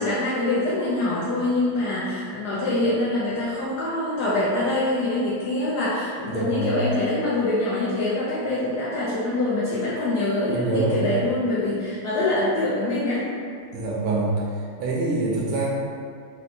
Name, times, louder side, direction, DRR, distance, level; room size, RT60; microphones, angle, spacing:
voice 1, 0.0-13.3, left 2 dB, 75° left, -8 dB, 0.9 m, -24 dB
voice 2, 6.3-6.8 10.5-11.0 13.7-14.5 14.8-15.7, right 3 dB, 75° right, -4 dB, 1.0 m, -25 dB
4.3 x 2.1 x 2.6 m, 2.2 s
omnidirectional pair, 2.2 m